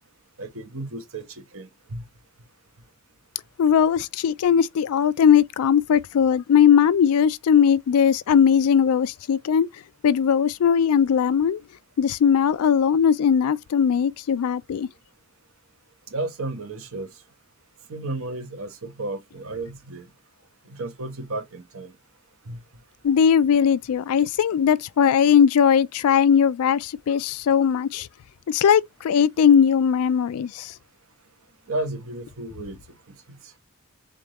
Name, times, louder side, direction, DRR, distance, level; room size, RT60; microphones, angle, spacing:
voice 1, 0.4-1.2 1.5-2.0 16.1-17.1 17.9-20.0 20.7-21.9 22.5-22.6 31.7-32.8, right 2 dB, 65° right, 1.0 m, -33 dB
voice 2, 3.6-9.7 10.0-11.6 12.0-14.9 23.0-28.1 28.5-30.7, left 7 dB, 80° left, 0.3 m, -19 dB
3.8 x 3.5 x 3.0 m
head